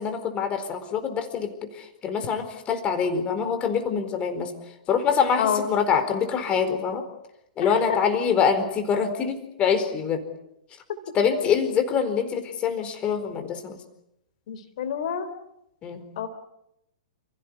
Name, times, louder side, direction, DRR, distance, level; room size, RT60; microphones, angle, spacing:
voice 1, 0.0-4.5 4.9-7.0 7.6-10.2 11.1-13.8 15.8-16.0, left 6 dB, 25° left, 8 dB, 4.5 m, -25 dB
voice 2, 14.5-15.3 16.2-16.3, left 8 dB, 50° left, 10 dB, 3.6 m, -27 dB
30.0 x 17.0 x 9.7 m, 0.82 s
figure-of-eight pair, 105°, 5 cm